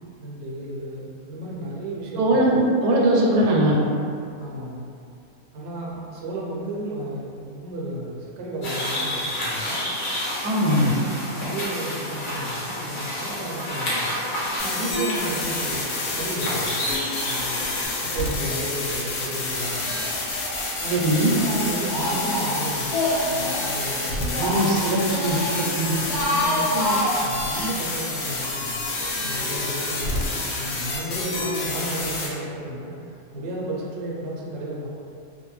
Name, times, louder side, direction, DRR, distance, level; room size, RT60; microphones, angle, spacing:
voice 1, 0.2-2.4 4.4-4.9 5.5-9.8 10.6-14.1 14.6-16.9 17.2-17.7 18.1-19.9 20.8-21.2 21.4-24.6 26.3-28.8 29.2-34.9, right 1 dB, 65° right, -4 dB, 0.7 m, -33 dB
voice 2, 2.2-3.8 10.4-10.9 20.9-21.3 24.4-25.4 25.7-26.0, right 1 dB, 85° right, -4 dB, 1.1 m, -20 dB
sound 1, 8.6-17.9, left 1 dB, 50° left, 0.6 m, -30 dB
sound 2, 14.6-32.3, left 2 dB, 75° left, 0.9 m, -29 dB
Speech, 19.9-20.6 20.9-23.7 24.1-25.6 25.9-27.7, left 1 dB, 90° left, 1.1 m, -27 dB
2.5 x 2.1 x 3.1 m, 2.4 s
omnidirectional pair, 1.5 m